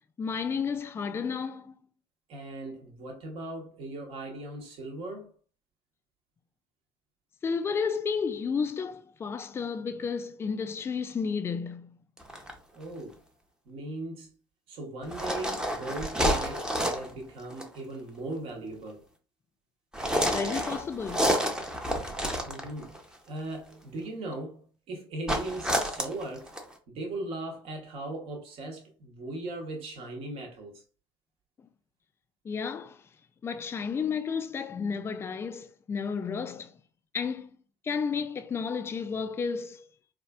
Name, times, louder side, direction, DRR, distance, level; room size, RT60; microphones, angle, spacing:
voice 1, 0.2-1.8 7.4-12.0 20.2-21.3 32.4-33.0 33.4-36.7 37.1-37.5 37.8-39.9, left 6 dB, 20° left, 0.3 m, -32 dB
voice 2, 2.3-5.3 12.7-13.2 13.7-14.3 14.7-19.0 22.4-26.5 26.9-30.8, right 2 dB, 50° right, 0.9 m, -38 dB
sound 1, 12.2-12.5 15.0-17.1 17.5-17.8 19.9-23.0 25.3-26.7, equal, 5° right, 0.7 m, -29 dB
4.1 x 2.4 x 2.3 m
figure-of-eight pair, 60°, 13 cm